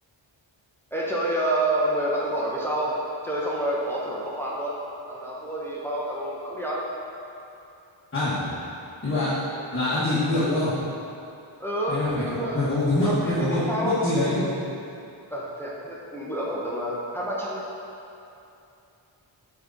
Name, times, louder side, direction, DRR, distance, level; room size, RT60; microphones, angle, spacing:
voice 1, 0.9-3.0 3.2-4.8 5.1-6.8 11.6-12.7 13.0-14.0 15.3-17.6, right 1 dB, 5° left, -5 dB, 0.8 m, -28 dB
voice 2, 8.1-8.5 9.0-9.4 9.7-10.7 11.9-12.2 12.5-14.5, left 2 dB, 25° left, -13 dB, 1.4 m, -24 dB
7.4 x 3.7 x 4.0 m, 2.7 s
wide cardioid pair, 125°, 47 cm